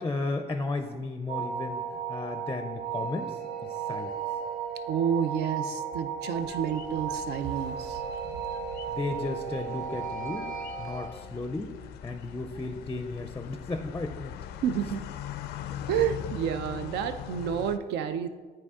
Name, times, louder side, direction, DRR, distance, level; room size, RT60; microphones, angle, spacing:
voice 1, 0.0-4.1 8.9-10.5 10.8-11.7 12.0-14.4, left 3 dB, 15° left, 7 dB, 0.4 m, -34 dB
sound 1, 1.3-11.1, right 6 dB, 50° right, 1.5 m, -35 dB
voice 2, 4.9-8.0 14.6-15.0 15.9-18.3, right 8 dB, 80° right, 10 dB, 0.5 m, -29 dB
sound 2, 6.3-17.8, left 10 dB, 75° left, 0.4 m, -42 dB
8.7 x 4.6 x 3.6 m, 1.4 s
cardioid pair, 110°, 17 cm